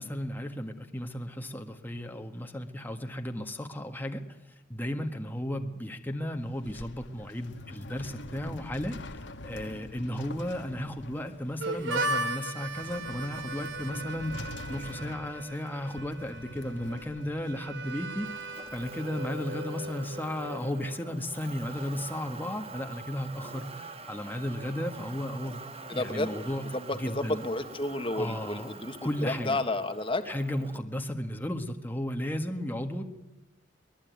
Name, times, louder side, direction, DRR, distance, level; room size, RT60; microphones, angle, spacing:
voice 1, 0.0-4.2 4.7-18.3 18.7-25.6 25.9-26.6 27.0-27.4 28.1-28.7 29.0-29.6 30.2-33.0, left 1 dB, 10° left, 4 dB, 1.5 m, -34 dB
sound 1, 6.3-18.2, left 1 dB, 80° left, 1.6 m, -45 dB
Harmonica, 11.6-21.2, right 2 dB, 75° right, 2.8 m, -37 dB
Motor vehicle (road), 18.2-30.8, right 4 dB, 30° right, 1.6 m, -46 dB
voice 2, 25.9-26.3 26.7-29.0 29.2-30.2, left 2 dB, 30° left, 8 dB, 1.6 m, -31 dB
23.0 x 21.5 x 9.5 m, 0.95 s
head